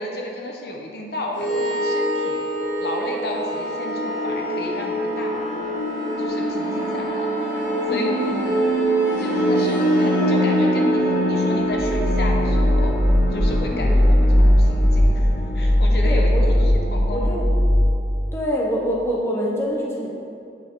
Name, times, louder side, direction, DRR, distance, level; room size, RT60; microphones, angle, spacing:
voice 1, 0.0-2.4 2.8-5.5 6.2-8.5 9.2-12.9 13.3-15.3 15.5-17.3, left 1 dB, 55° left, 0 dB, 0.8 m, -32 dB
sound 1, 1.3-17.9, equal, 85° left, 1.6 m, -20 dB
voice 2, 7.9-8.6 13.7-13.9 16.0-16.6 17.1-17.5 18.3-20.1, equal, 15° left, -3 dB, 0.9 m, -26 dB
8.5 x 4.9 x 4.5 m, 2.5 s
head